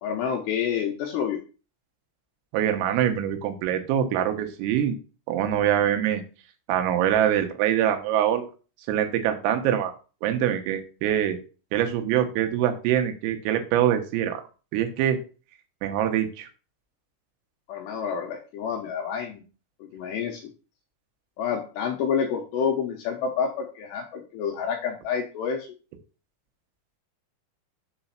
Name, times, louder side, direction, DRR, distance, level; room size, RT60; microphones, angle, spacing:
voice 1, 0.0-1.4 17.7-19.4 19.8-20.5 21.4-25.7, left 7 dB, 80° left, 2 dB, 2.6 m, -28 dB
voice 2, 2.5-5.0 5.3-6.2 6.7-8.5 8.9-9.9 10.2-11.4 11.7-14.4 14.7-15.2 15.8-16.5, right 10 dB, 85° right, 6 dB, 3.7 m, -24 dB
7.6 x 4.0 x 5.7 m, 0.35 s
omnidirectional pair, 5.9 m